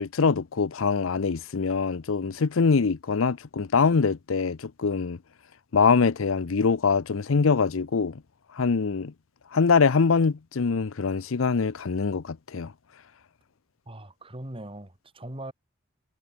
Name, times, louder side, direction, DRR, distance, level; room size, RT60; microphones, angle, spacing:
voice 1, 0.0-5.2 5.7-8.2 8.5-9.1 9.5-12.7, left 5 dB, 90° left, 0.6 m, -23 dB
voice 2, 13.9-15.5, right 1 dB, 25° right, 2.6 m, -40 dB
head